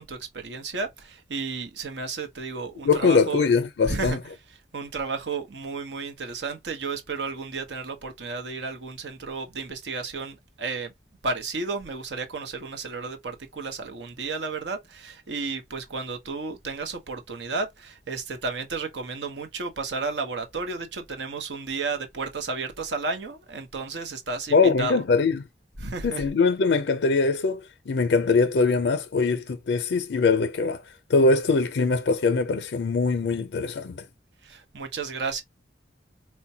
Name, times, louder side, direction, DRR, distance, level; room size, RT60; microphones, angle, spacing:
voice 1, 0.0-3.4 3.8-4.2 4.7-10.9 11.2-25.0 25.8-26.2 34.4-35.4, right 4 dB, 90° right, 0.9 m, -32 dB
voice 2, 2.8-4.2 24.5-25.4 26.0-30.8 31.1-34.0, left 4 dB, 80° left, 0.5 m, -22 dB
4.4 x 2.2 x 2.7 m
head